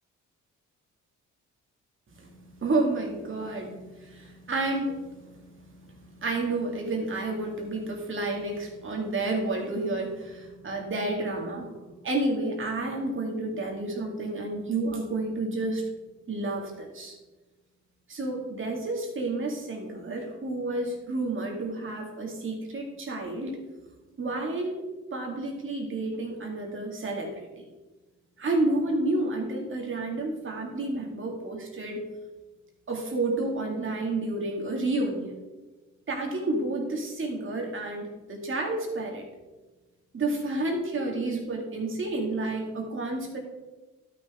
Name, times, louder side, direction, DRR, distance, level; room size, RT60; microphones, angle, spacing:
voice 1, 2.2-11.7 12.0-15.8 16.3-17.1 18.1-23.6 24.2-24.8 25.1-27.5 28.4-32.1 32.9-35.4 36.1-39.3 40.1-43.4, right 2 dB, 40° right, 1 dB, 2.2 m, -30 dB
12.0 x 5.9 x 3.6 m, 1.2 s
cardioid pair, 90°, 30 cm